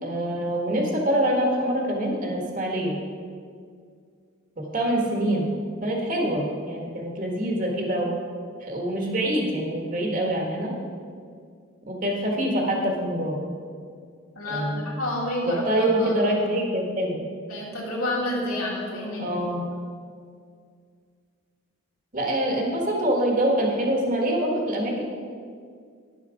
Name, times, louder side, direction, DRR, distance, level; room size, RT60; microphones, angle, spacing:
voice 1, 0.0-3.0 4.6-8.1 8.6-10.7 11.9-13.4 14.5-14.9 15.4-17.2 19.2-19.7 22.1-25.0, right 1 dB, 40° right, 0 dB, 1.6 m, -25 dB
voice 2, 14.4-16.4 17.5-19.4, left 1 dB, 80° left, -4 dB, 2.7 m, -29 dB
10.5 x 7.4 x 5.1 m, 2.1 s
head